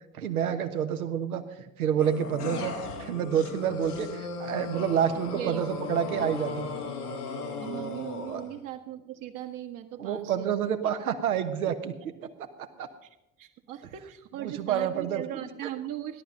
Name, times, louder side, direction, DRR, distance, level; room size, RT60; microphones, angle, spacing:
voice 1, 0.1-6.7 8.3-8.4 10.0-11.9 12.2-12.9 14.4-15.5, right 9 dB, 70° right, 7 dB, 1.3 m, -29 dB
sound 1, 2.0-8.6, left 4 dB, 80° left, 1.6 m, -36 dB
voice 2, 5.3-5.9 7.6-10.7 13.0-16.2, right 11 dB, 45° right, 4 dB, 1.5 m, -39 dB
17.0 x 11.5 x 5.3 m, 0.91 s
figure-of-eight pair, 65°, 45 cm